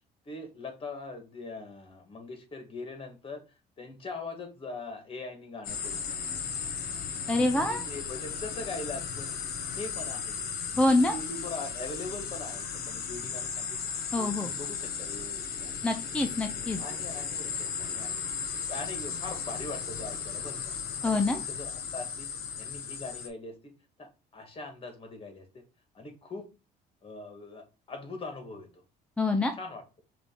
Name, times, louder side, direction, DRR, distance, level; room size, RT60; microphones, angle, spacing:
voice 1, 0.2-3.4 3.8-6.3 7.3-9.3 9.8-10.4 10.8-13.8 14.2-15.8 16.8-18.2 18.7-20.6 21.0-22.3 22.6-25.6 25.9-26.5 27.0-28.8 29.5-29.8, left 3 dB, 35° left, 4 dB, 1.3 m, -41 dB
sound 1, 5.6-23.3, left 6 dB, 60° left, 0.8 m, -36 dB
voice 2, 7.3-7.8 10.8-11.1 14.1-14.5 15.8-16.8 21.0-21.4 29.2-29.5, left 2 dB, 5° left, 5 dB, 0.4 m, -25 dB
4.9 x 2.5 x 3.6 m, 0.30 s
cardioid pair, 110°, 17 cm